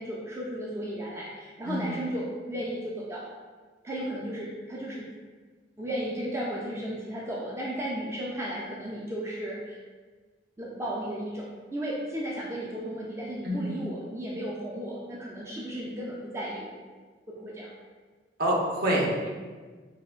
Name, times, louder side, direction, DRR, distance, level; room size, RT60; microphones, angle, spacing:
voice 1, 0.0-3.3 3.8-5.1 5.8-9.8 10.6-16.8 17.3-17.7, right 1 dB, 15° right, -5 dB, 0.3 m, -34 dB
voice 2, 18.4-19.3, equal, 55° right, -2 dB, 0.7 m, -26 dB
4.7 x 2.2 x 2.4 m, 1.4 s
head